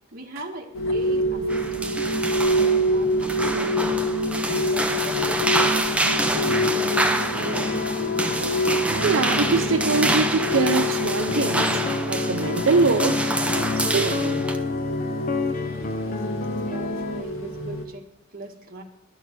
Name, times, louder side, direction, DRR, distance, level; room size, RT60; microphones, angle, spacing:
voice 1, 0.1-2.0 2.3-2.4 2.9-4.0 4.4-6.0 6.3-7.7 16.6-18.0 18.3-18.8, right 2 dB, 50° right, 1.6 m, -39 dB
sound 1, 0.7-17.8, left 1 dB, 85° left, 1.7 m, -27 dB
sound 2, 1.5-14.6, right 1 dB, 5° right, 0.6 m, -27 dB
sound 3, 6.5-17.2, left 2 dB, 40° left, 0.8 m, -30 dB
voice 2, 9.0-11.8 12.1-13.3 13.7-14.5, right 4 dB, 85° right, 0.5 m, -23 dB
11.5 x 6.5 x 7.6 m
head